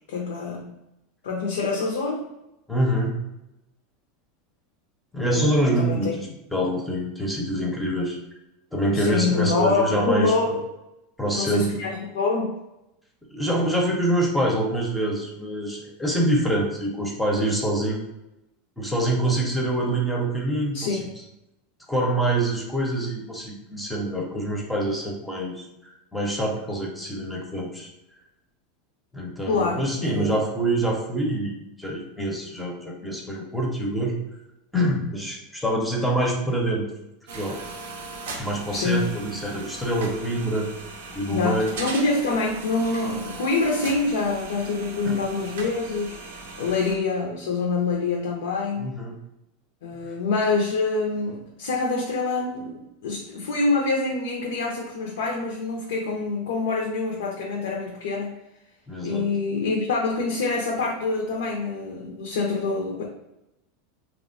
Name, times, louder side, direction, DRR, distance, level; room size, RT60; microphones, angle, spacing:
voice 1, 0.1-0.7 1.2-2.2 5.3-6.1 8.9-10.6 11.3-12.6 20.7-21.1 29.5-30.4 38.7-39.2 41.3-48.9 49.8-58.3 59.0-63.0, left 3 dB, 85° left, 0 dB, 0.4 m, -26 dB
voice 2, 2.7-3.1 5.1-8.2 8.7-10.6 11.2-11.7 13.3-18.0 18.8-21.1 21.9-27.9 29.1-34.2 34.7-36.9 37.3-37.6 38.4-40.7 41.1-41.7 45.0-45.2 48.8-49.2 58.9-59.3, right 1 dB, 5° left, -1 dB, 0.5 m, -25 dB
sound 1, 37.3-47.0, right 3 dB, 90° right, 0.5 m, -38 dB
2.9 x 2.1 x 2.5 m, 0.90 s
supercardioid pair, 125°, 0 cm